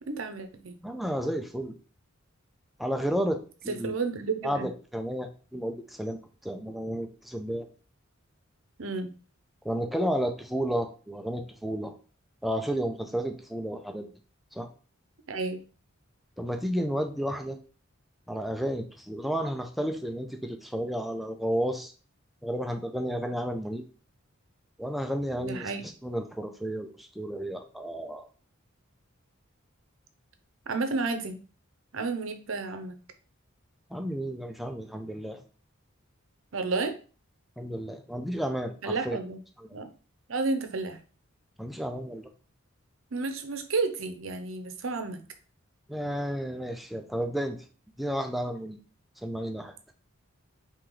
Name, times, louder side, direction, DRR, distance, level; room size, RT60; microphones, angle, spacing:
voice 1, 0.1-0.7 3.7-4.7 8.8-9.1 15.3-15.6 25.4-25.8 30.7-31.4 31.9-33.0 36.5-36.9 38.8-39.4 39.7-39.9 40.3-41.0 43.1-45.2, right 3 dB, 70° right, 7 dB, 0.7 m, -31 dB
voice 2, 0.8-1.7 2.8-4.0 4.4-7.7 9.6-11.9 12.4-14.1 14.5-14.7 16.4-17.6 18.3-21.9 22.4-23.8 24.8-28.3 33.9-35.4 37.6-39.2 39.6-39.7 41.6-42.3 45.9-47.6 48.0-48.8 49.2-49.7, equal, ahead, 5 dB, 0.5 m, -32 dB
4.7 x 2.9 x 3.8 m, 0.36 s
head